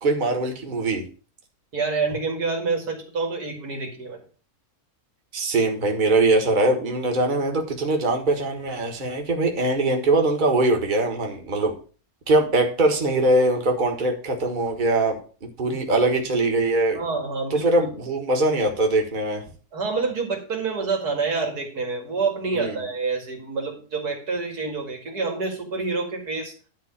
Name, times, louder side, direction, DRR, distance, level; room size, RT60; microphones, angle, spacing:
voice 1, 0.0-1.1 5.3-11.7 12.3-15.2 15.6-17.0 17.5-19.4 22.5-22.7, right 2 dB, 30° right, 2 dB, 1.6 m, -22 dB
voice 2, 1.7-4.2 15.7-15.8 16.9-17.9 19.7-26.5, right 4 dB, 80° right, 2 dB, 2.7 m, -27 dB
11.0 x 3.9 x 7.1 m, 0.38 s
omnidirectional pair, 1.6 m